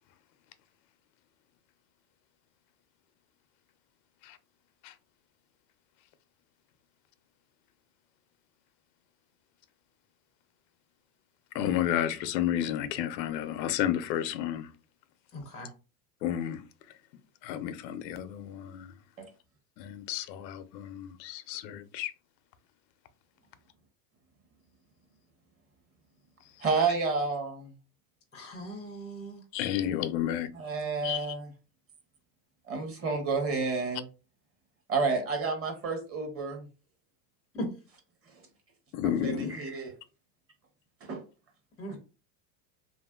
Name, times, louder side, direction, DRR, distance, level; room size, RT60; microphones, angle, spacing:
voice 1, 11.5-14.7 16.2-16.6 17.4-18.9 19.8-22.1 29.5-30.5 31.0-31.3 38.9-39.5, left 11 dB, 90° left, 0.6 m, -31 dB
voice 2, 15.3-15.7 28.3-29.4 37.5-37.7 41.8-42.0, equal, 15° left, 0.4 m, -38 dB
voice 3, 26.6-27.7 30.5-31.5 32.7-34.1 34.9-36.6 39.0-39.9 41.0-41.2, right 4 dB, 30° right, 0.8 m, -30 dB
2.9 x 2.5 x 2.2 m
supercardioid pair, 130°, 50 cm